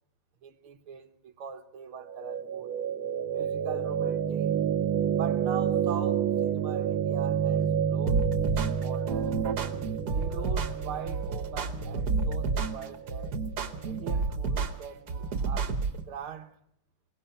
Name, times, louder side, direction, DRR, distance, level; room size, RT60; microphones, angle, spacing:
voice 1, 0.4-2.7 3.3-4.6 5.2-8.3 8.5-9.4 10.1-13.3 13.8-15.8 16.1-16.6, right 8 dB, 90° right, 2.0 m, -42 dB
sound 1, 2.1-14.1, right 8 dB, 75° right, 1.8 m, -30 dB
sound 2, 8.1-16.0, right 4 dB, 55° right, 1.5 m, -30 dB
22.0 x 20.5 x 5.7 m
omnidirectional pair, 2.3 m